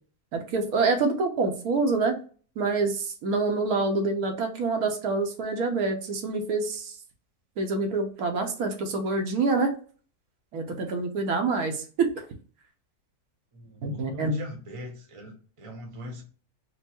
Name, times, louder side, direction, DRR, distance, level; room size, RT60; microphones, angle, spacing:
voice 1, 0.3-2.2 2.6-7.0 7.6-9.7 10.5-12.3 13.8-14.3, right 3 dB, 75° right, 4 dB, 1.3 m, -26 dB
voice 2, 13.5-16.2, equal, 25° right, 1 dB, 0.8 m, -41 dB
4.4 x 2.1 x 4.3 m, 0.40 s
omnidirectional pair, 1.6 m